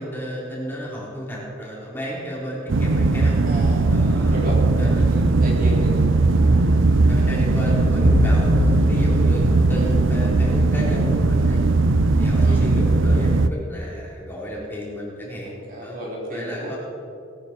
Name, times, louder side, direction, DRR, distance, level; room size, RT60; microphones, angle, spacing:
voice 1, 0.0-3.4 3.9-4.4 4.8-5.1 6.5-11.6 12.2-16.0 16.3-16.8, equal, 10° left, -5 dB, 3.9 m, -32 dB
sound 1, 2.7-13.5, right 3 dB, 70° right, 0.6 m, -18 dB
voice 2, 3.4-5.9 7.1-7.5 9.7-10.0 12.4-12.7 15.7-16.7, right 1 dB, 45° right, -3 dB, 3.6 m, -32 dB
sound 2, 7.8-10.6, left 5 dB, 55° left, 0.4 m, -26 dB
19.5 x 13.0 x 4.5 m, 2.6 s
head